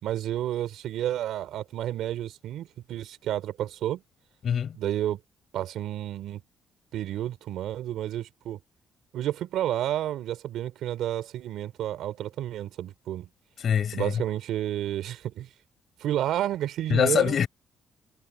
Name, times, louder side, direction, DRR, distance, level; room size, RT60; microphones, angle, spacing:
voice 1, 0.0-4.0 4.7-5.2 5.5-6.4 6.9-8.6 9.1-13.3 13.9-15.5 16.0-17.4, right 12 dB, 80° right, 3.3 m, -30 dB
voice 2, 4.4-4.8 13.6-14.2 16.9-17.5, left 8 dB, 55° left, 6.6 m, -24 dB
cardioid pair, 90°, 0 cm